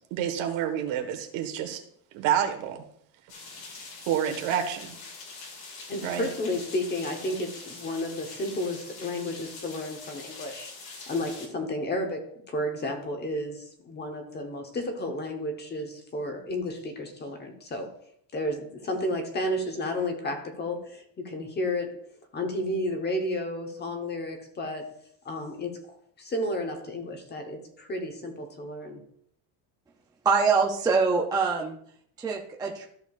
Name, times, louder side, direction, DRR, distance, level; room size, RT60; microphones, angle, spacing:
voice 1, 0.1-1.8 2.1-2.8 4.1-5.0 6.0-6.3, right 9 dB, 80° right, 4 dB, 1.5 m, -28 dB
sound 1, 3.3-11.5, left 3 dB, 50° left, 2.2 m, -44 dB
voice 2, 5.9-17.9 18.3-24.9 25.2-29.0, left 1 dB, 20° left, 4 dB, 1.0 m, -32 dB
voice 3, 30.2-31.8 32.2-32.9, right 5 dB, 10° right, 0 dB, 0.4 m, -24 dB
14.0 x 6.5 x 2.4 m, 0.66 s
cardioid pair, 180°, 46 cm